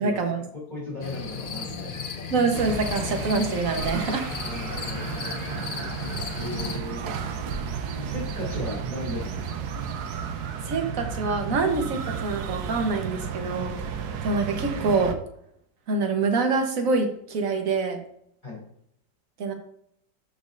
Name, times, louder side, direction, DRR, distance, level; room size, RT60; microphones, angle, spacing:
voice 1, 0.0-0.4 2.3-4.3 10.6-13.7 14.2-15.1 15.9-18.0 19.4-19.5, right 4 dB, 50° right, 4 dB, 1.5 m, -25 dB
voice 2, 0.5-2.1 4.4-5.7 6.4-7.0 7.9-9.6 18.4-18.6, left 2 dB, 25° left, -4 dB, 3.2 m, -36 dB
sound 1, 1.0-6.8, left 5 dB, 55° left, 0.6 m, -35 dB
sound 2, 2.5-15.1, right 6 dB, 65° right, 1.3 m, -33 dB
13.0 x 5.3 x 2.6 m, 0.70 s
omnidirectional pair, 1.9 m